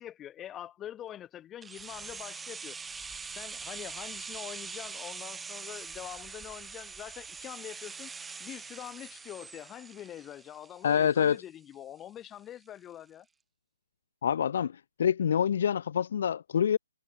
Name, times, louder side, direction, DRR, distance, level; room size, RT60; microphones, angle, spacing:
voice 1, 0.0-2.8 3.3-8.1 8.4-13.3, left 11 dB, 15° left, 3.8 m, -44 dB
sound 1, 1.6-11.4 11.7-11.8, right 5 dB, 5° right, 0.4 m, -43 dB
voice 2, 10.8-11.4 14.2-16.8, left 8 dB, 55° left, 0.7 m, -26 dB
hypercardioid pair, 155°, 0 cm